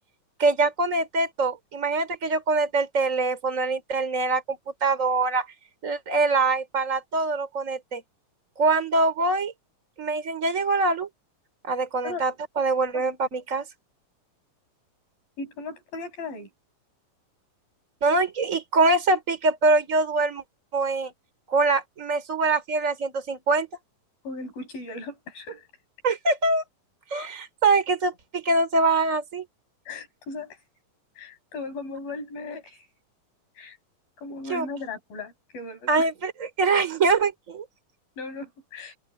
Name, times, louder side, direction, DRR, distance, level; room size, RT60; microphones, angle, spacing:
voice 1, 0.4-5.5 5.8-8.0 8.6-9.5 10.0-11.1 11.6-13.7 18.0-20.4 20.7-21.1 21.5-23.7 26.0-26.6 27.1-29.4 34.5-34.7 35.9-36.3 36.6-37.6, right 3 dB, 20° right, 4.4 m, -24 dB
voice 2, 15.4-16.5 24.2-25.7 29.9-30.6 31.2-32.9 33.6-33.8 34.2-36.1 38.2-38.9, left 3 dB, 85° left, 9.8 m, -37 dB
open air
omnidirectional pair, 4.0 m